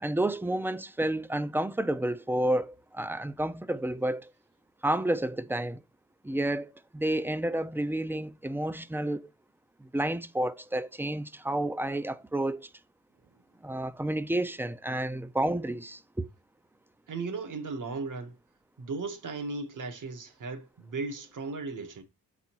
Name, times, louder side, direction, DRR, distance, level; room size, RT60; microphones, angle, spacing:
voice 1, 0.0-4.3 4.8-5.8 6.2-9.3 9.8-12.7 13.6-16.3, right 1 dB, 5° right, 0.5 m, -30 dB
voice 2, 17.1-18.4 18.8-22.0, right 3 dB, 60° right, 1.7 m, -36 dB
7.7 x 4.2 x 4.5 m
cardioid pair, 70°, 35 cm